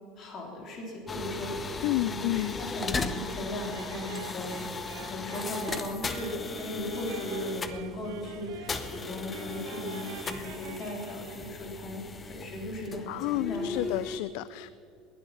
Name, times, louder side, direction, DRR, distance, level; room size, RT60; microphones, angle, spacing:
voice 1, 0.2-1.5 2.0-4.8 5.1-12.0 12.3-14.0, left 1 dB, 35° left, 0 dB, 3.8 m, -37 dB
sound 1, 1.1-14.2, left 3 dB, 15° left, 0.7 m, -37 dB
voice 2, 1.8-2.5 13.1-14.7, left 18 dB, 65° left, 16 dB, 0.3 m, -30 dB
sound 2, 3.7-11.7, right 12 dB, 75° right, 0.6 m, -47 dB
20.0 x 11.0 x 5.7 m, 2.7 s
cardioid pair, 170°, 0 cm